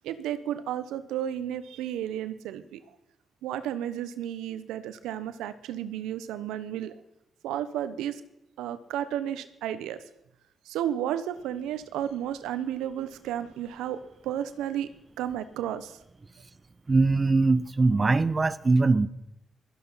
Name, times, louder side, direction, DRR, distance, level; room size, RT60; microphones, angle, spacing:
voice 1, 0.0-2.8 3.4-7.0 7.4-8.2 8.6-10.0 10.7-14.9 15.2-16.0, right 11 dB, 90° right, 12 dB, 0.9 m, -32 dB
voice 2, 16.9-19.1, right 3 dB, 35° right, 16 dB, 0.8 m, -22 dB
17.0 x 13.5 x 5.6 m, 0.84 s
supercardioid pair, 55°, 0 cm